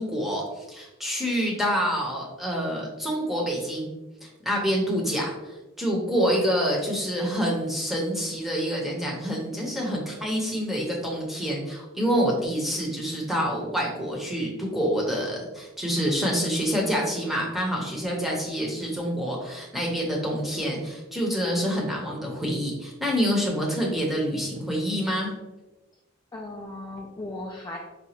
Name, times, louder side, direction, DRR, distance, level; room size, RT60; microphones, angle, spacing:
voice 1, 0.0-3.9 4.2-25.3, equal, ahead, -3 dB, 0.7 m, -27 dB
voice 2, 12.5-12.8 26.3-27.8, left 2 dB, 15° left, -2 dB, 0.3 m, -37 dB
4.9 x 2.3 x 2.8 m, 1.1 s
head